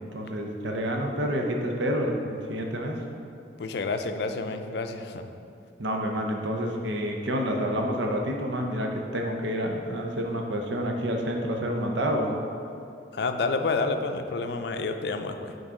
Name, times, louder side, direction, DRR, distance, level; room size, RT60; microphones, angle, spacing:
voice 1, 0.1-3.0 5.8-12.4, equal, 75° right, 1 dB, 0.7 m, -28 dB
voice 2, 3.6-5.3 13.1-15.5, left 3 dB, 60° left, 6 dB, 0.4 m, -29 dB
9.5 x 3.9 x 3.7 m, 2.6 s
head